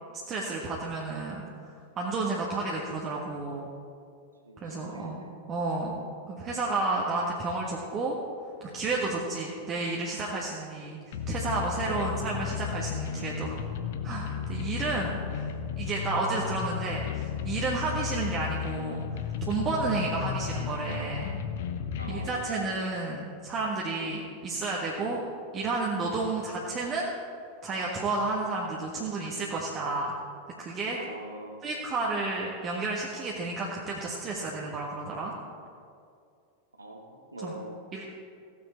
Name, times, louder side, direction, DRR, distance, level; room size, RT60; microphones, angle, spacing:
voice 1, 0.3-1.4 2.0-3.7 4.6-5.2 5.5-6.0 6.3-8.2 8.6-13.6 14.0-15.5 15.8-19.2 19.5-21.3 22.1-25.2 25.5-27.1 27.6-30.1 30.6-31.0 31.6-35.3 37.4-37.6 37.9-38.1, right 3 dB, 30° right, -3 dB, 1.4 m, -31 dB
voice 2, 2.6-3.0 4.4-5.3 9.2-9.5 11.8-12.2 17.9-18.0 21.9-22.9 31.0-31.6 36.7-37.8, right 1 dB, 80° right, 2 dB, 1.6 m, -43 dB
sound 1, 11.1-22.3, left 7 dB, 55° left, 0.8 m, -34 dB
15.5 x 8.7 x 4.4 m, 2.4 s
figure-of-eight pair, 90°, 0 cm